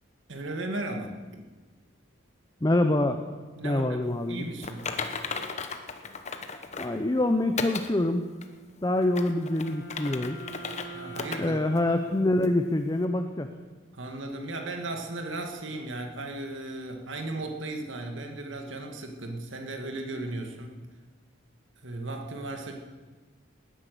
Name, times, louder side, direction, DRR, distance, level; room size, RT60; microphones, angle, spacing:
voice 1, 0.3-1.4 3.6-4.9 10.9-11.6 13.9-20.8 21.8-22.7, right 2 dB, 75° right, 3 dB, 2.0 m, -36 dB
voice 2, 2.6-3.2 3.6-4.4 6.8-8.3 8.8-10.4 11.4-13.5, left 1 dB, 20° left, 7 dB, 0.6 m, -25 dB
Typing, 4.6-7.0 7.6-7.9 8.4-8.5 9.0-10.9 11.1-11.4 11.8-11.9 12.4-12.5, left 5 dB, 35° left, 1.0 m, -35 dB
Wind instrument woodwind instrument, 8.8-13.1, right 2 dB, 70° left, 3.0 m, -45 dB
19.0 x 10.0 x 6.9 m, 1.3 s
head